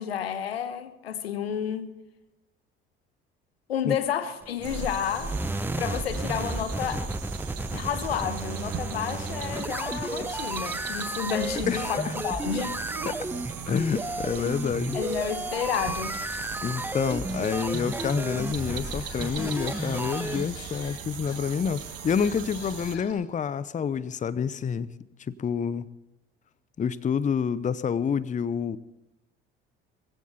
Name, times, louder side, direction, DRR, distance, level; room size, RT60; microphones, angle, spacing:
voice 1, 0.0-2.0 3.7-5.4 5.8-7.1 7.7-12.8 14.9-16.2, left 8 dB, 85° left, 1.1 m, -31 dB
sound 1, 4.4-20.4, right 2 dB, 5° right, 0.9 m, -33 dB
sound 2, 4.6-23.0, right 9 dB, 55° right, 1.6 m, -39 dB
voice 2, 11.7-12.1 13.1-13.2 13.7-15.0 16.6-24.9 25.3-25.9 26.8-28.8, left 7 dB, 25° left, 0.7 m, -28 dB
sound 3, 17.3-17.4 17.8-23.1, left 5 dB, 55° left, 5.1 m, -47 dB
20.5 x 16.0 x 4.1 m
hypercardioid pair, 60°, 30 cm